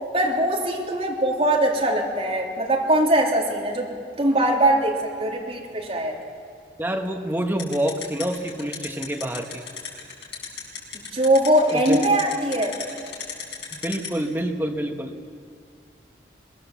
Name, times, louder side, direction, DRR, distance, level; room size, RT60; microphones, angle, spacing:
voice 1, 0.1-3.9 4.2-6.2 11.1-12.7, right 1 dB, 35° right, -2 dB, 3.2 m, -21 dB
voice 2, 6.8-9.6 11.7-12.0 13.7-15.1, right 1 dB, 10° right, 3 dB, 1.4 m, -27 dB
sound 1, 7.6-14.1, left 7 dB, 80° left, 5.6 m, -33 dB
23.5 x 20.5 x 7.3 m, 2.3 s
head